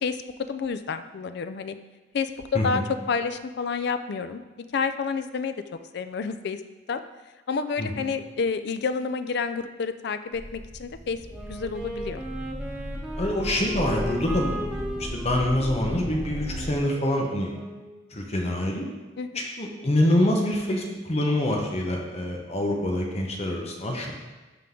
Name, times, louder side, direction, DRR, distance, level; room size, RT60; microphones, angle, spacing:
voice 1, 0.0-1.8 2.1-2.8 3.1-4.4 4.7-5.6 5.9-6.6 6.9-7.0 7.5-11.2 11.5-12.2 19.2-19.3, left 5 dB, 60° left, 10 dB, 0.4 m, -29 dB
sound 1, 10.3-16.8, equal, 10° left, 1.8 m, -35 dB
Wind instrument woodwind instrument, 11.3-18.0, equal, 5° right, 0.8 m, -38 dB
voice 2, 13.2-17.5 18.1-18.9 19.6-24.1, left 1 dB, 35° left, 0 dB, 0.8 m, -26 dB
11.0 x 3.8 x 3.7 m, 1.2 s
head